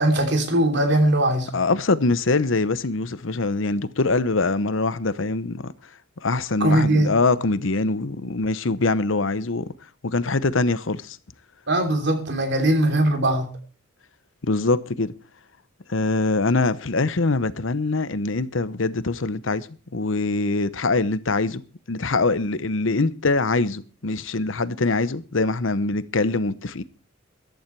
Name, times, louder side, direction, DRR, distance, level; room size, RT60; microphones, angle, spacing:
voice 1, 0.0-1.5 6.6-7.1 11.7-13.5, right 1 dB, 60° right, 3.2 m, -20 dB
voice 2, 1.5-5.7 6.2-9.7 10.0-11.2 14.4-15.1 15.9-19.7 19.9-21.6 21.9-26.8, left 3 dB, 75° left, 0.9 m, -23 dB
14.5 x 12.0 x 4.7 m
head